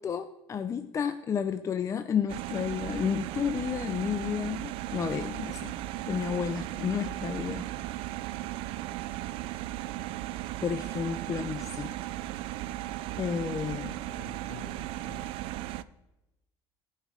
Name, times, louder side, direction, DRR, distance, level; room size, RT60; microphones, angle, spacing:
voice 1, 0.0-5.8 6.1-8.0 10.6-11.9 13.2-14.0, left 7 dB, 30° left, 0.5 m, -31 dB
sound 1, 2.3-15.8, right 15 dB, 65° right, 0.5 m, -36 dB
voice 2, 12.3-12.6 14.0-15.3, left 8 dB, 55° left, 1.2 m, -51 dB
15.0 x 5.7 x 4.9 m
supercardioid pair, 105°, 10 cm